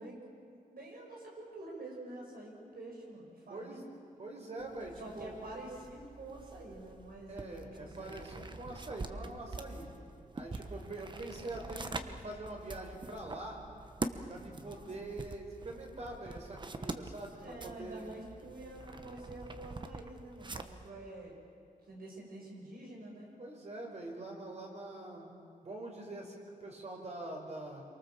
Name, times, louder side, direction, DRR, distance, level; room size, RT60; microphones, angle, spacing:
voice 1, 0.0-3.8 5.0-8.2 14.4-14.9 17.4-21.3 21.8-23.3, right 2 dB, 85° right, -1 dB, 6.8 m, -48 dB
voice 2, 3.5-3.8 4.2-5.4 7.3-9.9 10.3-13.6 14.2-18.1 23.4-25.3 25.6-27.8, right 2 dB, 50° right, 1 dB, 5.1 m, -44 dB
sound 1, 4.6-20.9, right 3 dB, 30° right, 1.2 m, -45 dB
27.0 x 24.0 x 7.4 m, 2.5 s
wide cardioid pair, 140°, 15 cm